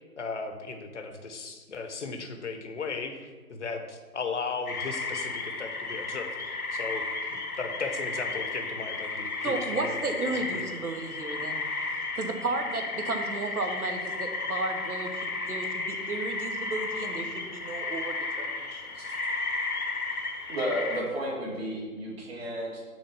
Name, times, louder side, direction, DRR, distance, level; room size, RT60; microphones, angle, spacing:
voice 1, 0.2-7.0 7.3-10.6, left 4 dB, 50° left, 6 dB, 0.9 m, -36 dB
sound 1, 4.7-21.0, left 3 dB, 75° left, 1.0 m, -33 dB
voice 2, 9.4-11.6 12.1-18.8, right 3 dB, 75° right, 5 dB, 1.1 m, -33 dB
voice 3, 20.5-22.8, equal, 40° right, -2 dB, 2.0 m, -32 dB
6.2 x 4.0 x 5.9 m, 1.4 s
figure-of-eight pair, 145°, 44 cm